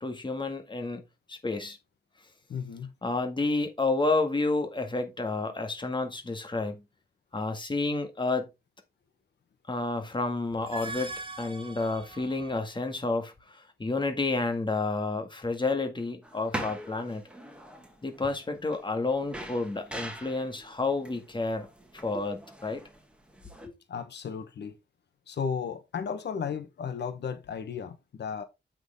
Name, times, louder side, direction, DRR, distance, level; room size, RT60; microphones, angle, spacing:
voice 1, 0.0-1.0 1.3-1.8 3.0-6.8 7.3-8.5 9.7-11.1 11.4-17.2 18.0-21.7 21.9-22.8 23.6-23.7, left 3 dB, 30° left, 1.9 m, -30 dB
voice 2, 2.5-2.9 23.9-24.8 25.3-28.4, left 6 dB, 85° left, 1.1 m, -34 dB
sound 1, 10.5-12.8, right 3 dB, 30° right, 1.8 m, -41 dB
sound 2, 16.2-23.7, right 1 dB, 5° right, 2.4 m, -43 dB
8.2 x 6.2 x 3.6 m
wide cardioid pair, 90°, 17 cm